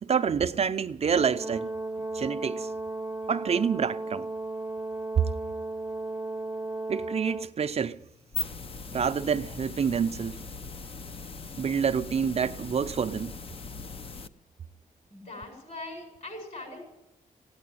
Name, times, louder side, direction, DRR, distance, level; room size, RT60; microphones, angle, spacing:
voice 1, 0.0-1.7 2.1-2.7 3.3-4.3 5.2-5.3 6.9-8.0 8.9-10.4 11.6-13.3, right 7 dB, 45° right, 0.5 m, -27 dB
Brass instrument, 1.1-7.5, right 2 dB, 10° right, 0.7 m, -35 dB
sound 1, 8.1-14.3, left 3 dB, 40° left, 0.6 m, -39 dB
voice 2, 15.1-16.8, left 2 dB, 60° left, 7.5 m, -41 dB
16.0 x 9.6 x 9.2 m
wide cardioid pair, 125°, 14 cm